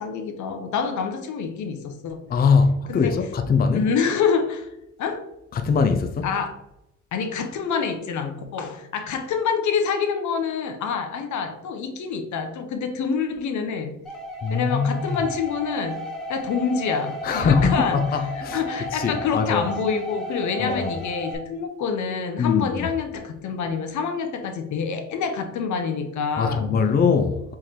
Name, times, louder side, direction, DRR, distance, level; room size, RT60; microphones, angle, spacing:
voice 1, 0.0-2.3 2.9-3.2 3.7-4.7 5.0-5.3 6.2-6.5 7.1-14.0 14.5-18.2 18.5-26.7, left 6 dB, 75° left, 0.8 m, -27 dB
voice 2, 2.3-3.9 5.5-6.3 14.4-15.2 17.2-18.6 18.9-19.6 20.6-20.9 22.4-22.9 26.4-27.5, left 5 dB, 30° left, 0.5 m, -22 dB
sound 1, 14.1-21.4, equal, ahead, 1.3 m, -34 dB
3.7 x 3.2 x 4.3 m
cardioid pair, 90°, 30 cm